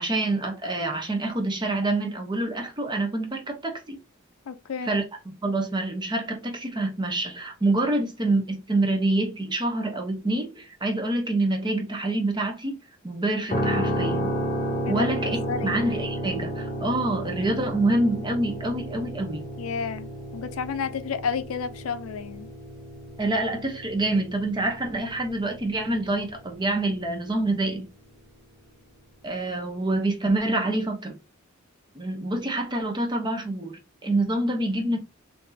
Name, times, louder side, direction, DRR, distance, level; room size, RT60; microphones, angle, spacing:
voice 1, 0.0-4.0 4.9-5.0 5.4-12.8 13.0-14.3 14.9-15.4 15.6-19.4 23.2-27.9 29.2-31.2 31.9-35.0, right 2 dB, 20° right, 0.8 m, -26 dB
voice 2, 4.5-5.0 14.8-15.8 19.6-22.5, left 6 dB, 80° left, 0.4 m, -31 dB
sound 1, 13.5-27.5, equal, 35° left, 0.8 m, -32 dB
3.8 x 2.7 x 2.7 m
head